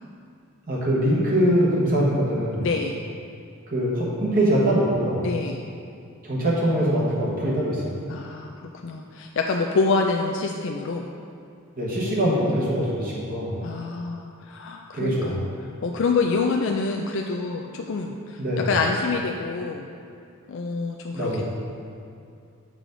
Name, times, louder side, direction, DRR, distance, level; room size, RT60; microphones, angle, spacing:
voice 1, 0.7-2.7 3.7-5.2 6.2-8.0 11.8-13.6 14.9-15.5 18.4-18.7 21.1-21.4, equal, 40° right, -6 dB, 1.2 m, -23 dB
voice 2, 2.6-2.9 5.2-5.7 8.1-8.5 8.8-11.0 13.6-19.9 20.5-21.4, left 4 dB, 60° left, 2 dB, 0.4 m, -26 dB
7.7 x 4.9 x 3.8 m, 2.4 s
head